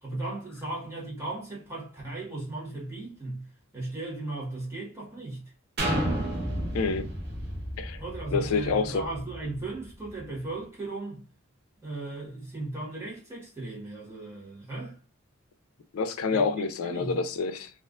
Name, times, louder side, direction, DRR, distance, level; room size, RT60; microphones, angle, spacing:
voice 1, 0.0-3.4 3.7-5.4 8.0-11.2 11.8-15.0 16.3-17.2, right 2 dB, 15° right, 1.0 m, -36 dB
sound 1, 5.8-9.6 10.1-10.2, right 1 dB, 55° right, 0.7 m, -31 dB
voice 2, 6.7-7.1 7.8-8.0 8.3-9.0 15.9-17.7, left 4 dB, 90° left, 0.4 m, -27 dB
2.4 x 2.2 x 2.3 m
head